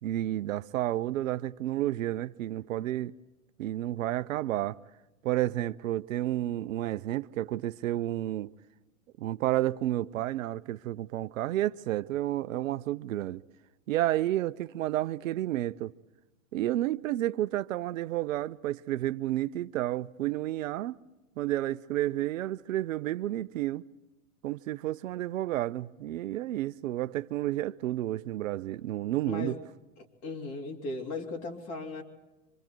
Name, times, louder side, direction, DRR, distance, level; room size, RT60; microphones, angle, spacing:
voice 1, 0.0-3.1 3.6-4.8 5.2-8.5 9.2-13.4 13.9-15.9 16.5-21.0 21.4-23.8 24.4-29.6, right 14 dB, 70° right, 0.7 m, -31 dB
voice 2, 29.3-29.6 30.2-32.0, left 3 dB, 35° left, 3.2 m, -36 dB
25.5 x 25.0 x 4.5 m
hypercardioid pair, 115°, 41 cm